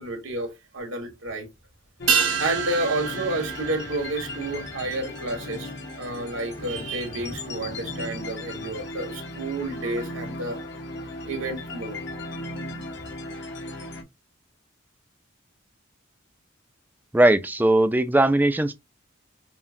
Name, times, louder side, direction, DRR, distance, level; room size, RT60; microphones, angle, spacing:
voice 1, 0.0-1.5 2.4-5.7 6.0-10.6 11.2-12.0 12.6-12.9, right 2 dB, 85° right, 1.6 m, -30 dB
sound 1, 2.0-14.0, left 2 dB, 55° left, 0.8 m, -37 dB
sound 2, 2.1-6.8 7.0-7.1, right 7 dB, 65° right, 0.9 m, -29 dB
voice 2, 17.1-18.7, right 1 dB, 10° right, 0.3 m, -19 dB
5.7 x 2.1 x 2.6 m
head